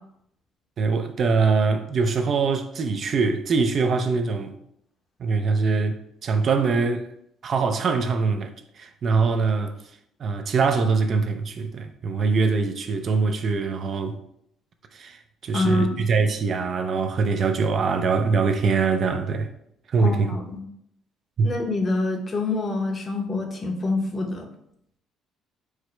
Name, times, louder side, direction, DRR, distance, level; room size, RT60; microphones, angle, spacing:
voice 1, 0.8-4.5 5.2-7.1 7.4-9.7 10.2-14.2 14.9-19.5 19.9-20.4 21.4-21.5, right 4 dB, 45° right, 0.4 m, -23 dB
voice 2, 15.5-16.0 20.0-20.6 21.4-24.5, left 2 dB, 30° left, 0.7 m, -26 dB
4.8 x 2.1 x 4.3 m
cardioid pair, 125°, 0 cm